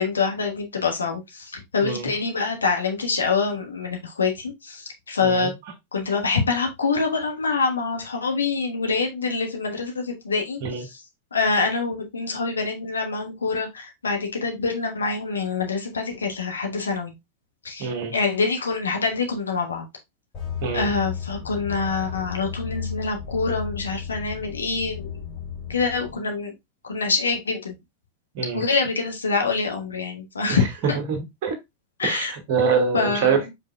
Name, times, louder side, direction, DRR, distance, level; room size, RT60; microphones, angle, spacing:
voice 1, 0.0-5.5 5.9-11.0 11.3-17.1 17.6-19.9 20.7-25.2 25.7-26.5 26.8-27.7 28.5-31.0 32.0-32.3 32.9-33.5, left 4 dB, 75° left, 1.3 m, -25 dB
voice 2, 17.8-18.1 20.6-20.9 28.3-28.6 30.5-30.6 31.1-31.5 32.0-33.5, right 5 dB, 45° right, 1.2 m, -25 dB
sound 1, 20.3-26.2, left 8 dB, 30° left, 3.0 m, -34 dB
5.2 x 4.2 x 2.3 m
figure-of-eight pair, 90°, 0 cm